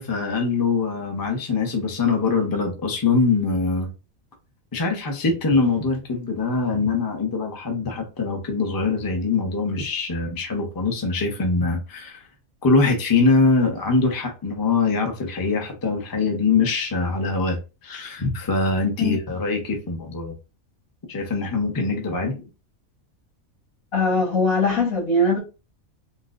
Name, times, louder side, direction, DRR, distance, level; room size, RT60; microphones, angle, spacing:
voice 1, 0.0-3.9 4.7-12.2 12.6-17.6 17.8-20.3 21.1-22.4, left 4 dB, 25° left, 0.5 m, -23 dB
voice 2, 23.9-25.4, left 2 dB, 80° left, 2.0 m, -21 dB
4.0 x 2.2 x 2.4 m
omnidirectional pair, 1.4 m